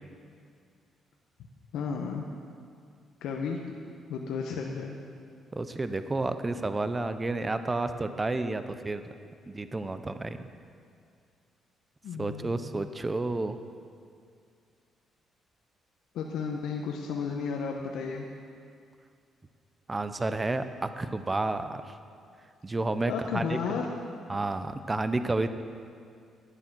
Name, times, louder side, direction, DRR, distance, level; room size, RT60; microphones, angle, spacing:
voice 1, 1.7-2.3 3.2-3.6 4.1-5.0 12.0-12.9 16.1-18.3 23.1-23.9, left 5 dB, 80° left, 1 dB, 0.9 m, -33 dB
voice 2, 5.5-9.0 9.5-10.5 12.2-13.6 19.9-21.8 22.6-23.6 24.3-25.5, right 2 dB, 20° right, 10 dB, 0.6 m, -30 dB
11.0 x 9.7 x 6.1 m, 2.3 s
cardioid pair, 90°, 0 cm